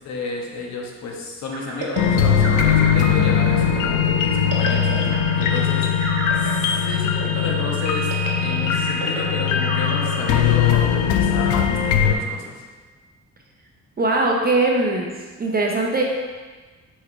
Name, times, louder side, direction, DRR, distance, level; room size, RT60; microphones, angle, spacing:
voice 1, 0.0-12.6, left 3 dB, 65° left, -1 dB, 1.2 m, -32 dB
sound 1, 1.5-12.1, right 2 dB, 50° right, 1.2 m, -33 dB
sound 2, 2.0-12.1, left 8 dB, 85° left, 0.6 m, -20 dB
voice 2, 14.0-15.1 15.4-16.0, right 2 dB, 30° right, 0 dB, 0.7 m, -20 dB
4.6 x 4.5 x 4.7 m, 1.4 s
cardioid pair, 90°, 30 cm